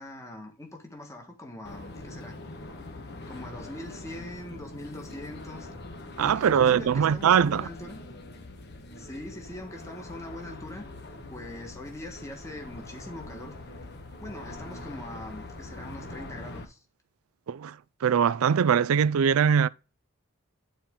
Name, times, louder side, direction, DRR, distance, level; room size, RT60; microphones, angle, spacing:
voice 1, 0.0-2.4 3.3-5.7 6.2-8.0 8.9-10.8 11.3-13.6 14.2-16.8, left 1 dB, 15° left, 1.6 m, -42 dB
sound 1, 1.6-16.6, left 2 dB, 50° left, 1.3 m, -43 dB
voice 2, 6.2-7.7 17.5-17.7 18.0-19.7, right 7 dB, 90° right, 0.4 m, -22 dB
10.5 x 4.4 x 3.7 m
head